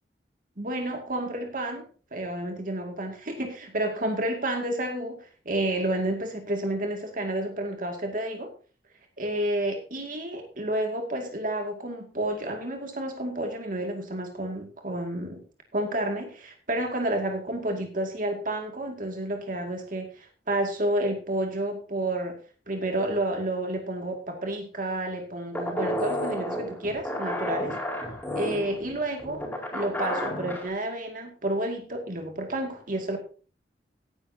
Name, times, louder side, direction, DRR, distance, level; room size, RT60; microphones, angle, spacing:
voice 1, 0.6-8.5 9.2-15.4 15.7-22.4 22.7-27.8 28.3-29.4 29.7-33.2, right 1 dB, 50° right, 3 dB, 2.3 m, -30 dB
sound 1, 25.5-30.7, equal, 10° left, 4.7 m, -31 dB
17.0 x 10.5 x 2.8 m, 0.37 s
head